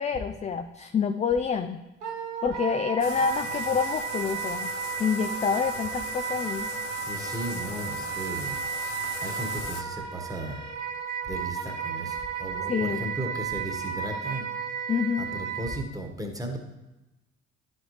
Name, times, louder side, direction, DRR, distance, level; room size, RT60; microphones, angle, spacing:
voice 1, 0.0-1.8 2.4-4.7 5.0-6.7 12.7-13.1 14.9-15.3, left 6 dB, 20° left, 8 dB, 0.4 m, -27 dB
Wind instrument woodwind instrument, 2.0-15.8, right 7 dB, 85° right, 0.8 m, -34 dB
Bathtub (filling or washing), 3.0-9.8, left 8 dB, 70° left, 0.7 m, -39 dB
voice 2, 6.9-10.7 11.2-14.8 15.2-16.6, right 1 dB, 10° right, 3 dB, 1.4 m, -36 dB
11.0 x 4.2 x 3.2 m, 1.0 s
hypercardioid pair, 50°, 36 cm